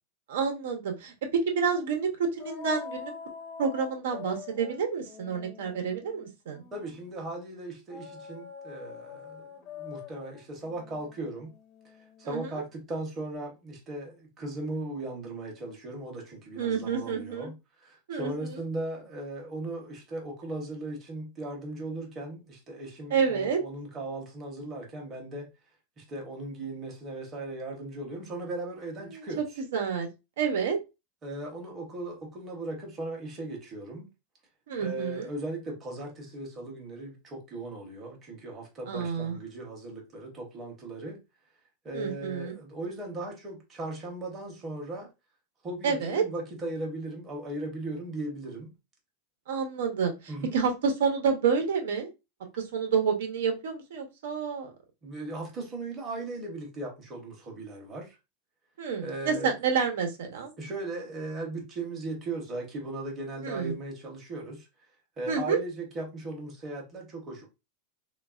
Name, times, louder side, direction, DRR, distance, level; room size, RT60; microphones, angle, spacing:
voice 1, 0.3-3.1 3.6-6.6 12.2-12.5 16.6-17.5 18.1-18.6 23.1-23.6 29.1-29.2 29.7-30.1 30.4-30.8 34.7-35.3 38.9-39.4 41.9-42.5 45.8-46.2 49.5-52.1 52.6-54.7 58.8-60.5 63.4-63.7 65.3-65.6, right 6 dB, 80° right, 0.7 m, -29 dB
sound 1, 2.4-7.0 7.9-12.6, left 6 dB, 30° left, 0.5 m, -45 dB
voice 2, 6.7-11.5 12.0-25.5 26.0-29.4 31.2-34.1 34.8-41.2 41.8-45.1 45.6-48.7 50.3-50.6 55.0-58.2 59.0-59.5 60.6-64.7 65.2-67.5, right 2 dB, 20° right, 0.7 m, -38 dB
3.2 x 2.3 x 2.3 m
supercardioid pair, 170°, 0 cm